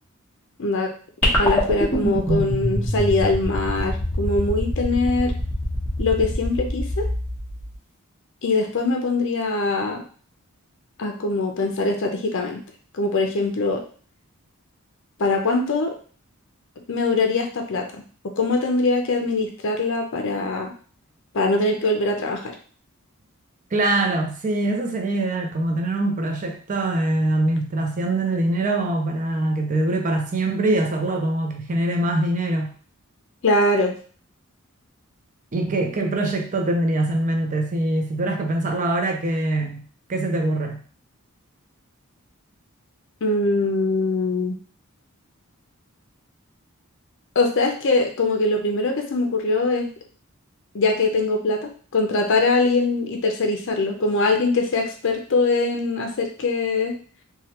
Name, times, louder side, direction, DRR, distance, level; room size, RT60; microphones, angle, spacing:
voice 1, 0.6-0.9 1.2-5.3 6.0-7.0 8.4-10.0 11.0-12.6 12.9-13.8 15.2-15.9 16.9-18.0 18.4-20.7 21.3-22.5 33.4-33.9 43.2-44.6 47.4-49.9 50.7-56.9, left 3 dB, 60° left, 3 dB, 0.6 m, -22 dB
sound 1, 1.2-7.7, left 1 dB, 10° left, 0.9 m, -25 dB
voice 2, 23.7-32.7 35.5-40.8, right 2 dB, 35° right, 3 dB, 0.5 m, -23 dB
3.1 x 2.3 x 2.8 m, 0.42 s
head